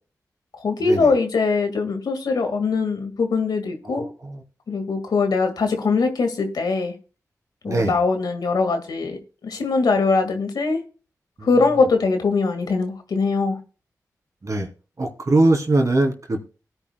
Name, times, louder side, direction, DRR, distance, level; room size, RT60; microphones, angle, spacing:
voice 1, 0.6-4.1 4.7-6.9 7.6-10.8 11.4-13.6, left 4 dB, 85° left, 1.9 m, -22 dB
voice 2, 3.9-4.4 7.7-8.0 11.4-11.5 14.4-14.7 15.0-16.4, right 2 dB, 50° right, 2.9 m, -21 dB
19.0 x 9.9 x 2.3 m
cardioid pair, 40°, 7 cm